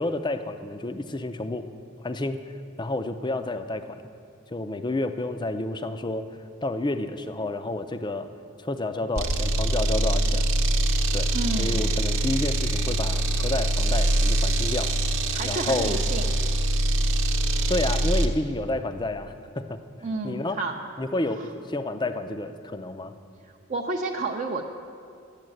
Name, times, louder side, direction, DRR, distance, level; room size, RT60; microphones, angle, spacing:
voice 1, 0.0-1.6 2.0-2.4 2.8-4.0 4.5-6.3 6.6-8.3 8.6-10.5 11.1-11.3 11.6-14.9 15.4-16.0 17.7-19.8 20.2-20.6 21.0-23.2, left 2 dB, 20° left, 9 dB, 0.5 m, -30 dB
sound 1, 9.2-18.4, right 1 dB, 60° right, 0.9 m, -24 dB
voice 2, 11.3-11.9 15.3-16.3 20.0-20.7 21.4-21.5 23.7-24.6, right 3 dB, 35° right, 1 dB, 0.6 m, -30 dB
12.0 x 8.9 x 7.7 m, 2.4 s
head